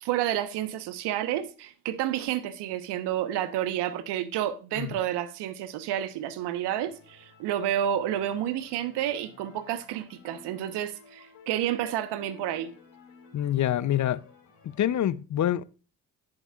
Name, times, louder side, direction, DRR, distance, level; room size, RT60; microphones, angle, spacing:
voice 1, 0.0-12.8, right 11 dB, 70° right, 1.2 m, -30 dB
sound 1, 6.6-15.1, left 5 dB, 75° left, 4.6 m, -54 dB
voice 2, 13.3-14.2 14.6-15.6, left 11 dB, 45° left, 0.7 m, -26 dB
11.5 x 10.5 x 2.4 m
hypercardioid pair, 45°, 42 cm